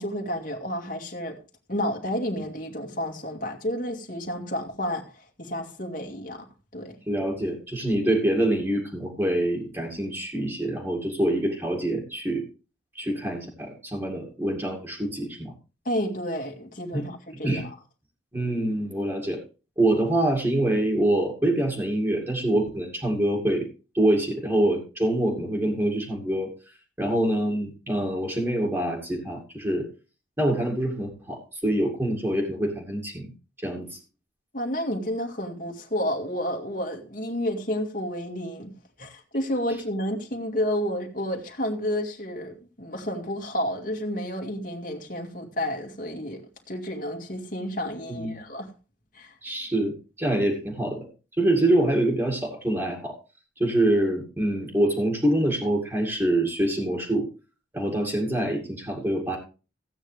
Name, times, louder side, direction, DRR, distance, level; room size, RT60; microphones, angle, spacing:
voice 1, 0.0-1.4 1.7-6.5 6.7-7.0 15.8-17.7 34.5-38.7 39.0-48.7 49.1-49.4, equal, 45° left, 2.3 m, -31 dB
voice 2, 7.1-12.4 12.9-15.5 16.9-17.0 17.4-17.6 18.3-19.4 19.8-23.6 23.9-26.5 27.0-29.9 30.4-33.3 33.6-34.0 48.1-48.3 49.4-51.1 51.4-53.2 53.6-57.3 57.7-59.4, right 1 dB, 15° right, 2.3 m, -25 dB
15.5 x 9.0 x 3.4 m
head